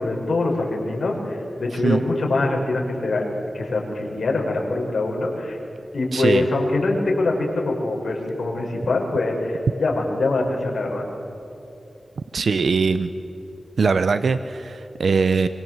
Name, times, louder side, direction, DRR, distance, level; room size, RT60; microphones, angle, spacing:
voice 1, 0.0-3.3 3.5-5.6 5.9-11.1, left 2 dB, 75° left, -1 dB, 6.0 m, -23 dB
voice 2, 6.1-6.5 12.3-13.1 13.8-15.5, right 4 dB, 75° right, 11 dB, 0.8 m, -21 dB
26.0 x 24.5 x 7.9 m, 2.9 s
wide cardioid pair, 130°, 0 cm